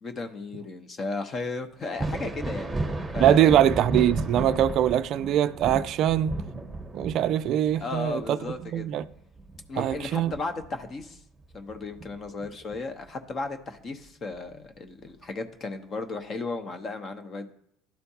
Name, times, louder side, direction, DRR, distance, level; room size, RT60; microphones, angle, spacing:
voice 1, 0.0-2.7 3.1-3.6 7.8-8.9 9.7-11.2 11.5-17.5, left 3 dB, 35° left, 0.9 m, -35 dB
Thunder, 1.8-11.2 11.5-12.8 14.3-14.4 15.2-15.4, right 2 dB, 10° right, 1.1 m, -34 dB
voice 2, 3.2-6.4 6.9-8.4 8.6-9.0 9.8-10.3, right 11 dB, 50° right, 0.3 m, -22 dB
11.5 x 4.4 x 2.8 m
hypercardioid pair, 70°, 0 cm